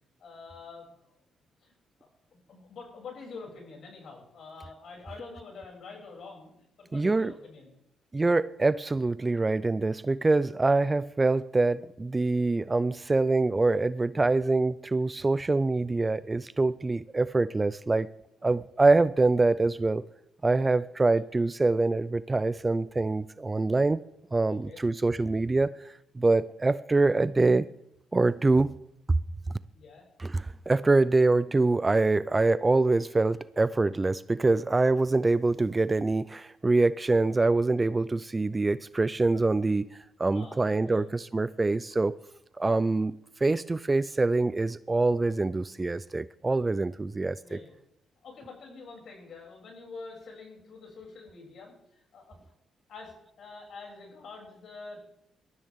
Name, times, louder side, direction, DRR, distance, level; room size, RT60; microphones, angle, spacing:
voice 1, 0.2-1.1 1.6-1.7 2.0-2.1 2.5-6.5 6.8-7.8 20.5-20.8 24.7-24.8 29.7-30.1 40.3-41.3 47.4-47.7 48.2-52.4 52.9-55.2, left 4 dB, 60° left, 7.0 m, -46 dB
voice 2, 6.9-7.3 8.1-18.1 18.4-20.0 20.4-24.0 24.3-25.7 26.2-27.7 28.1-28.8 30.2-42.2 42.6-43.1 43.4-47.6, right 3 dB, 20° right, 0.4 m, -25 dB
22.5 x 13.5 x 3.7 m
cardioid pair, 90°, 0 cm